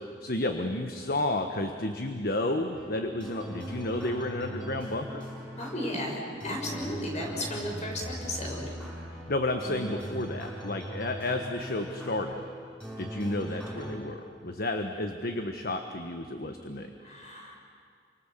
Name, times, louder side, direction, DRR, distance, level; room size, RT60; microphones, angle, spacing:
voice 1, 0.2-5.2 9.3-12.4 13.0-16.9, left 2 dB, 55° left, 5 dB, 1.4 m, -31 dB
sound 1, 2.7-14.0, equal, 5° left, 7.8 m, -40 dB
voice 2, 5.6-8.8 17.0-17.6, left 1 dB, 40° left, 0 dB, 6.4 m, -35 dB
30.0 x 26.0 x 7.6 m, 2.1 s
head